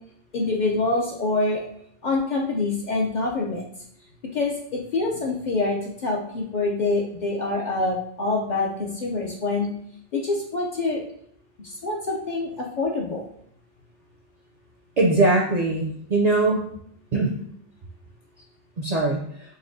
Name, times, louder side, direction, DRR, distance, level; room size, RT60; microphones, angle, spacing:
voice 1, 0.3-1.6 2.0-3.6 4.3-9.7 10.1-11.0 11.6-13.2, left 3 dB, 55° left, -1 dB, 0.5 m, -25 dB
voice 2, 15.0-16.7 17.1-17.4 18.8-19.2, right 2 dB, 55° right, -1 dB, 0.4 m, -21 dB
4.1 x 3.2 x 2.5 m, 0.67 s
omnidirectional pair, 1.2 m